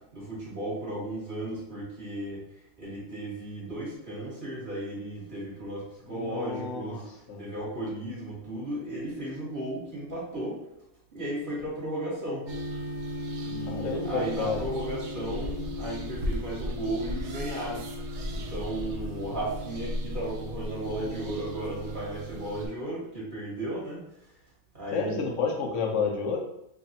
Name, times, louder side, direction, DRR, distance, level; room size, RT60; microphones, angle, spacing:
voice 1, 0.0-2.4 2.8-10.6 11.1-12.5 13.4-17.9 18.3-24.3 24.7-25.2, right 1 dB, 40° right, -7 dB, 1.5 m, -35 dB
voice 2, 6.1-7.0 7.3-7.4 13.7-14.6 20.9-21.3 24.9-26.4, left 5 dB, 65° left, 0 dB, 1.0 m, -30 dB
sound 1, 12.5-22.7, equal, 60° right, 0.9 m, -35 dB
3.2 x 2.4 x 4.1 m, 0.82 s
omnidirectional pair, 1.4 m